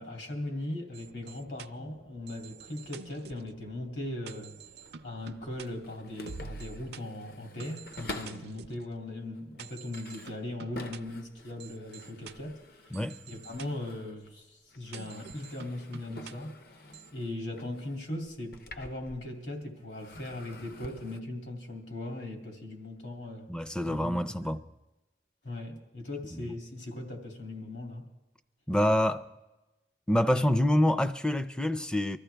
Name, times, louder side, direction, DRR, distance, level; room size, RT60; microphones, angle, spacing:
voice 1, 0.0-4.5 5.0-12.6 12.8-13.0 13.3-16.5 17.1-23.5 23.8-24.5 25.4-28.0, left 1 dB, 75° left, 2.7 m, -39 dB
sound 1, 0.9-7.0 7.6-8.8 9.6-11.0 11.6-12.3 12.9-13.7 14.9-16.3 16.9-17.1, right 5 dB, 60° right, 0.5 m, -48 dB
sound 2, 4.7-8.6 9.2-14.4 14.7-19.5 19.9-21.2, left 2 dB, 55° left, 0.8 m, -48 dB
voice 2, 23.5-24.6 26.3-26.4 28.7-29.2 30.1-32.2, left 1 dB, 5° left, 0.4 m, -26 dB
24.0 x 13.5 x 3.4 m
head